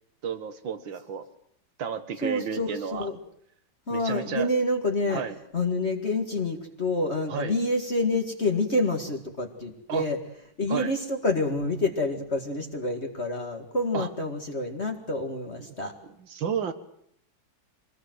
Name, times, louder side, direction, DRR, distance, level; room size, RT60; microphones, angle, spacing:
voice 1, 0.2-1.3 1.8-3.1 3.9-4.5 5.1-5.4 7.3-7.6 9.9-10.1 10.7-10.9 13.9-14.1 15.6-15.8 16.0-16.7, right 7 dB, 80° right, 11 dB, 2.3 m, -32 dB
voice 2, 2.2-3.2 3.9-5.2 5.5-10.2 10.6-15.9, left 2 dB, 35° left, 3 dB, 2.2 m, -28 dB
25.0 x 19.5 x 7.9 m, 0.70 s
omnidirectional pair, 2.1 m